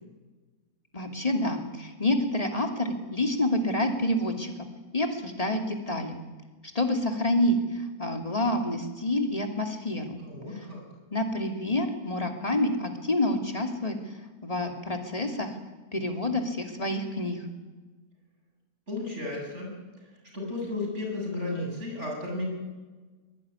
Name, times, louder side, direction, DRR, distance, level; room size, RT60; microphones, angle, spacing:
voice 1, 0.9-4.7 4.9-6.2 6.7-10.2 11.1-14.0 14.4-15.5 15.9-17.4, left 1 dB, 25° left, 4 dB, 2.9 m, -28 dB
voice 2, 10.2-10.8 18.9-19.7 20.3-22.5, left 2 dB, 50° right, 0 dB, 8.3 m, -33 dB
22.5 x 22.0 x 9.9 m, 1.3 s
omnidirectional pair, 1.6 m